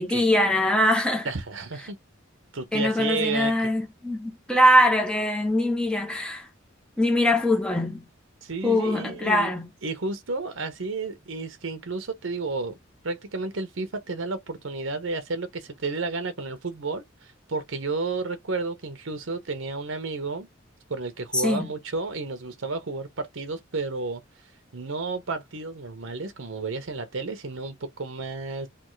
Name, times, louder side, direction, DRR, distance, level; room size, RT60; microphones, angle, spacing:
voice 1, 0.0-1.3 2.7-6.5 7.0-8.0 8.6-9.7 21.3-21.7, left 1 dB, 5° left, 0.8 m, -22 dB
voice 2, 1.2-2.0 2.5-3.6 8.4-9.5 9.8-12.7 13.0-20.5 20.9-24.2 24.7-28.7, right 3 dB, 70° right, 0.9 m, -31 dB
3.4 x 2.3 x 3.2 m
head